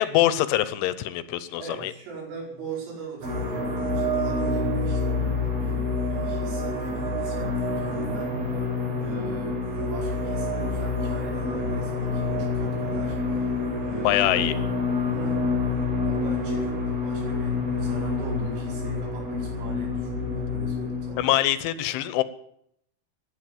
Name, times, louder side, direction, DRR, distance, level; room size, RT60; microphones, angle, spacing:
voice 1, 0.0-1.9 14.0-14.6 21.2-22.2, left 14 dB, 80° left, 14 dB, 3.1 m, -24 dB
voice 2, 1.6-8.6 9.0-14.6 15.1-15.5 16.0-21.3, right 2 dB, 85° right, -1 dB, 7.7 m, -40 dB
sound 1, 3.2-21.2, left 3 dB, 50° right, 5.5 m, -27 dB
15.5 x 10.5 x 8.8 m, 0.74 s
omnidirectional pair, 5.7 m